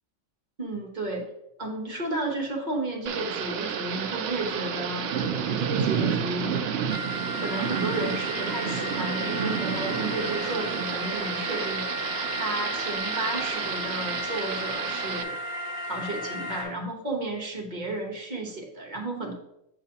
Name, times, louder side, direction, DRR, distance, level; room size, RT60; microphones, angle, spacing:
voice 1, 0.6-1.3 1.6-6.6 7.3-12.0 12.3-15.4 15.8-19.3, right 2 dB, 35° right, 0 dB, 1.1 m, -33 dB
Thunder / Rain, 3.1-15.2, right 7 dB, 65° right, 0.6 m, -30 dB
sound 1, 6.9-16.6, equal, 85° left, 1.6 m, -34 dB
7.7 x 4.8 x 2.8 m, 0.80 s
omnidirectional pair, 1.4 m